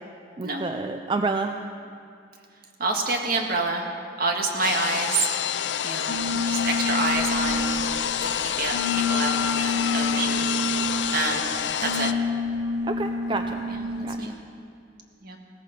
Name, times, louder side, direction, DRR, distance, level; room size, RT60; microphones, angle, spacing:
voice 1, 0.4-1.6 12.8-13.6 14.0-14.3, right 3 dB, 30° right, 6 dB, 0.4 m, -29 dB
voice 2, 2.8-3.9 4.2-5.3 5.8-7.8 8.2-10.8 11.1-11.5 11.8-12.1 13.7-14.3 15.2-15.4, right 3 dB, 55° right, 2 dB, 1.7 m, -28 dB
sound 1, 4.6-12.1, left 8 dB, 90° left, 0.5 m, -28 dB
sound 2, 6.1-14.3, left 3 dB, 70° left, 0.9 m, -29 dB
17.5 x 14.0 x 5.2 m, 2.4 s
head